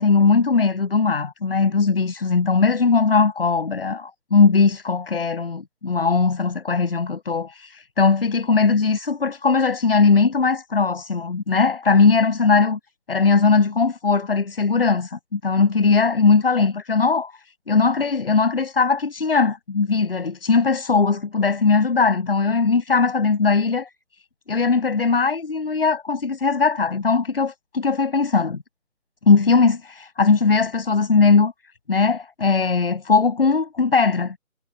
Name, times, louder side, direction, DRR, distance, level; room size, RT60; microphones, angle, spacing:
voice 1, 0.0-12.8 13.1-17.3 17.7-23.9 24.5-28.6 29.3-31.5 31.9-34.3, left 4 dB, 45° left, 7.4 m, -19 dB
figure-of-eight pair, 170°, 41 cm